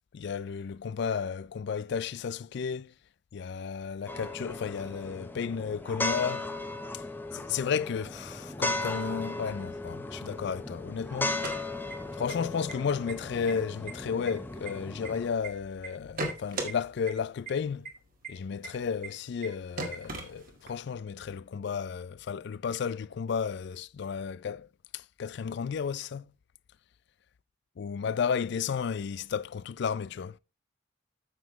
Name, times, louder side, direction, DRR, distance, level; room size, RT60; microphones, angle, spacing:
voice 1, 0.1-2.9 3.3-6.5 6.9-7.0 7.3-11.5 12.1-17.9 18.3-24.7 24.9-26.2 27.8-30.4, left 6 dB, 60° left, 0.3 m, -33 dB
sound 1, 4.1-15.3, left 2 dB, 10° left, 0.8 m, -36 dB
sound 2, 11.2-12.3 12.7-12.8 13.1-13.5 13.9-15.5 15.8-16.7 17.1-17.2 17.5-17.6 17.8-17.9 18.2-18.3 18.6-18.7 19.0-19.1 19.4-19.5 19.8-20.8, right 3 dB, 45° right, 1.8 m, -37 dB
9.5 x 7.2 x 3.1 m
head